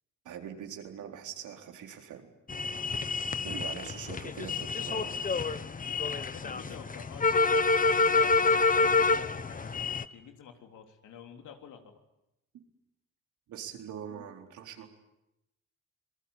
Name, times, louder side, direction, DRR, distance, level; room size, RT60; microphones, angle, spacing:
voice 1, 0.2-2.3 3.4-5.2 13.5-14.9, right 8 dB, 80° right, 4 dB, 4.1 m, -42 dB
sound 1, 2.5-10.0, left 4 dB, 25° left, 1.2 m, -27 dB
voice 2, 6.1-11.9, left 7 dB, 80° left, 5 dB, 3.5 m, -49 dB
26.0 x 20.0 x 9.9 m, 0.89 s
cardioid pair, 90°, 30 cm